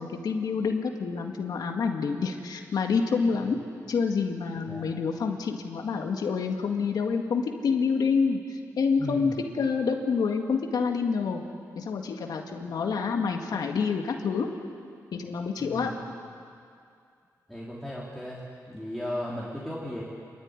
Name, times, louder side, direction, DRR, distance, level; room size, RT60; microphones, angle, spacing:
voice 1, 0.0-3.6 3.9-11.4 11.8-14.5 15.1-15.9, left 5 dB, 75° left, 3 dB, 1.9 m, -27 dB
voice 2, 4.6-4.9 9.0-9.3 15.6-16.0 17.5-20.0, left 1 dB, ahead, -6 dB, 3.4 m, -36 dB
27.5 x 13.0 x 9.8 m, 2.3 s
cardioid pair, 95°, 7 cm